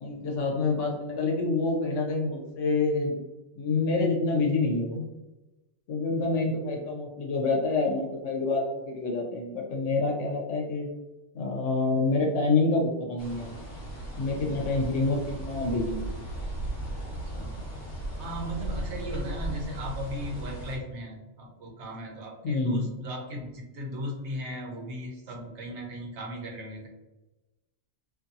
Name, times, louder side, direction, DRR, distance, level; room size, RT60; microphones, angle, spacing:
voice 1, 0.0-3.2 3.5-5.0 5.9-10.9 11.3-13.5 14.2-16.1 22.4-22.9, left 3 dB, 80° left, 0 dB, 1.1 m, -27 dB
sound 1, 13.2-20.8, right 1 dB, 55° left, 1.4 m, -36 dB
voice 2, 18.2-26.9, equal, 70° right, 0 dB, 1.0 m, -36 dB
2.7 x 2.6 x 2.6 m, 1.1 s
omnidirectional pair, 1.3 m